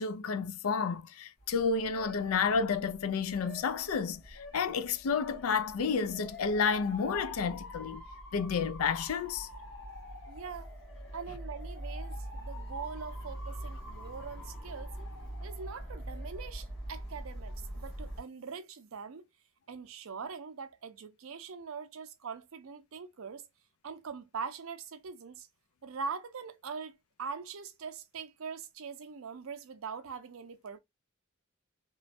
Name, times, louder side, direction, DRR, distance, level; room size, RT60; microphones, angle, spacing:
voice 1, 0.0-8.0 8.3-9.5, left 5 dB, 85° left, 0.4 m, -31 dB
Motor vehicle (road) / Siren, 1.4-18.2, equal, 60° left, 1.7 m, -44 dB
voice 2, 10.3-10.7 11.1-15.0 15.4-19.3 19.7-23.5 23.8-25.5 25.8-26.9 27.2-30.8, right 5 dB, 75° right, 0.5 m, -42 dB
3.0 x 2.2 x 2.5 m
head